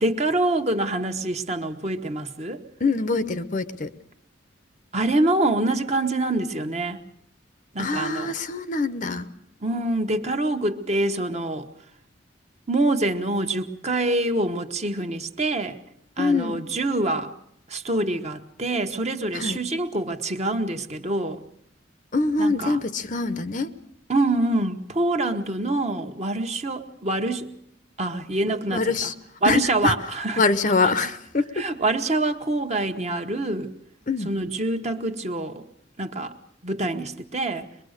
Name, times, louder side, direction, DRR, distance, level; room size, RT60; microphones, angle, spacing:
voice 1, 0.0-2.6 4.9-7.0 7.7-8.3 9.6-11.7 12.7-15.8 16.2-17.3 17.7-21.4 22.4-22.8 24.1-27.5 28.0-29.1 29.4-30.4 31.6-33.7 34.2-35.6 36.0-36.3 36.6-37.7, right 2 dB, 35° right, 1.2 m, -25 dB
voice 2, 2.8-3.9 7.8-9.3 16.2-16.6 19.3-19.6 22.1-23.7 28.5-29.1 29.4-29.9 30.4-31.6 34.1-34.3, left 3 dB, 40° left, 0.8 m, -24 dB
23.0 x 22.5 x 6.6 m
head